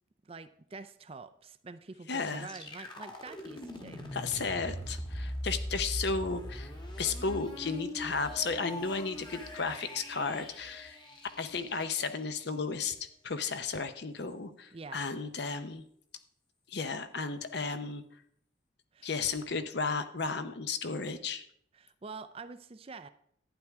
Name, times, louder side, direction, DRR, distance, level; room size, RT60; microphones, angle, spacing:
voice 1, 0.2-4.5 14.7-15.0 18.9-19.1 21.7-23.1, right 4 dB, 30° right, 11 dB, 0.4 m, -47 dB
voice 2, 2.1-2.5 4.1-6.7 7.0-11.0 11.4-13.0 13.2-15.8 16.7-18.0 19.0-21.4, left 4 dB, 55° left, 10 dB, 0.7 m, -34 dB
sound 1, 2.4-12.2, left 1 dB, 25° left, 1.3 m, -41 dB
11.5 x 9.4 x 3.5 m, 0.67 s
head